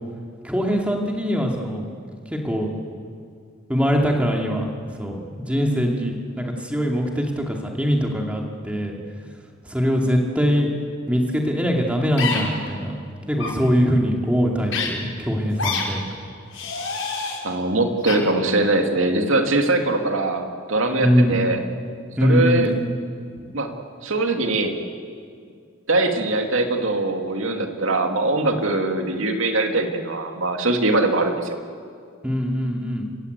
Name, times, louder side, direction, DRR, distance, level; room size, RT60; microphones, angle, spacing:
voice 1, 0.4-1.9 2.3-2.7 3.7-4.7 5.0-8.9 9.7-10.7 11.1-13.0 13.3-16.0 21.0-21.3 22.2-22.8 32.2-33.0, equal, 5° right, 1 dB, 2.7 m, -22 dB
sound 1, 12.2-12.4 13.3-13.5 14.7-14.9 15.6-15.8 16.5-17.4 18.1-18.2, left 5 dB, 80° left, 6.5 m, -26 dB
voice 2, 17.4-21.6 22.2-22.7 23.5-23.7 24.0-24.8 25.9-31.6, right 2 dB, 85° right, 4 dB, 2.3 m, -22 dB
30.0 x 16.5 x 8.2 m, 2.3 s
head